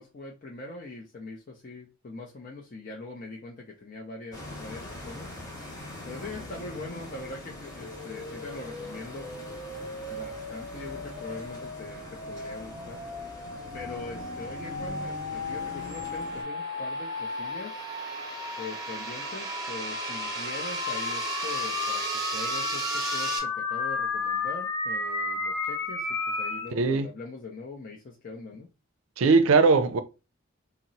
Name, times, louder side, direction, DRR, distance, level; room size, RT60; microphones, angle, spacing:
voice 1, 0.0-5.4 6.1-9.3 10.1-13.1 13.7-17.8 18.6-22.0 22.3-28.7, left 3 dB, 40° left, 0.5 m, -42 dB
sound 1, 4.3-16.4, left 1 dB, 20° left, 0.9 m, -42 dB
sound 2, 7.8-26.7, left 3 dB, 70° left, 0.9 m, -34 dB
sound 3, 13.0-23.4, right 2 dB, 20° right, 0.7 m, -37 dB
voice 2, 26.7-27.1 29.2-30.0, right 4 dB, 80° right, 0.4 m, -20 dB
2.8 x 2.0 x 3.9 m
head